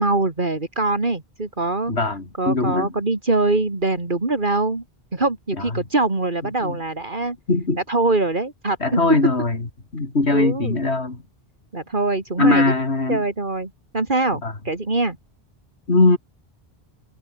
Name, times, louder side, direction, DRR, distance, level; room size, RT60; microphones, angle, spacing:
voice 1, 0.0-1.9 2.4-4.8 5.1-7.4 7.9-8.8 10.3-10.8 11.7-12.6 13.1-15.2, right 2 dB, 50° right, 3.1 m, -23 dB
voice 2, 1.9-2.9 6.6-6.8 7.5-7.8 8.8-9.6 9.9-11.2 12.4-13.2 14.4-14.5 15.9-16.2, left 3 dB, 80° left, 3.5 m, -20 dB
omnidirectional pair, 1.1 m